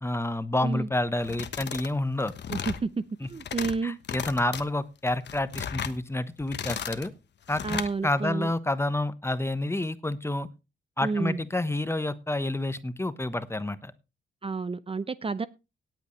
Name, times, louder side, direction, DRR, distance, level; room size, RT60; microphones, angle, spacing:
voice 1, 0.0-2.3 3.2-3.3 3.8-7.1 7.5-10.5 11.0-13.9, left 1 dB, 15° left, 1.1 m, -29 dB
sound 1, 1.2-1.9 2.2-2.8 3.3-3.8 4.0-4.6 5.1-6.0 6.4-7.1 7.5-7.9, left 8 dB, 65° left, 1.2 m, -35 dB
voice 2, 2.5-4.0 7.6-8.5 11.0-11.4 14.4-15.5, right 4 dB, 30° right, 0.6 m, -30 dB
18.0 x 8.2 x 3.2 m
cardioid pair, 80°, 20 cm